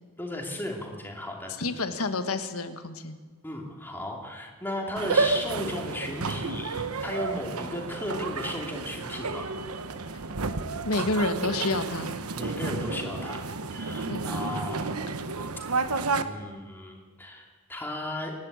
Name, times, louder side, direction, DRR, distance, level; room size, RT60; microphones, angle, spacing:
voice 1, 0.2-1.5 3.4-9.5 12.3-14.9 16.2-18.3, left 1 dB, 10° left, 0 dB, 2.9 m, -35 dB
voice 2, 1.6-3.2 10.8-12.2 14.1-14.3, left 3 dB, 80° left, 9 dB, 1.5 m, -29 dB
sound 1, 5.0-16.2, right 4 dB, 90° right, 1.1 m, -31 dB
26.0 x 11.5 x 8.7 m, 1.4 s
head